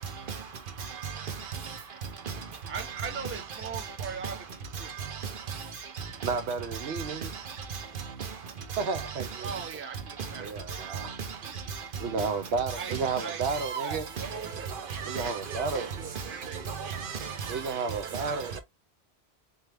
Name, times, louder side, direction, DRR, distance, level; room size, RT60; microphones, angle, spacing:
voice 1, 2.7-4.4 4.8-4.9 9.4-10.5 11.4-11.5 12.7-14.7 15.2-15.4 15.7-16.6 17.2-17.3 17.6-17.8, right 6 dB, 15° right, 0.5 m, -40 dB
voice 2, 6.2-7.3 8.8-9.5 10.4-11.1 12.0-14.1 15.0-15.9 16.2-16.6 17.5-18.6, right 4 dB, 80° right, 1.0 m, -32 dB
voice 3, 13.6-14.0 15.0-15.2 15.5-15.6 16.8-17.3 18.2-18.3, right 6 dB, 60° right, 0.9 m, -35 dB
3.6 x 2.8 x 3.3 m
omnidirectional pair, 1.1 m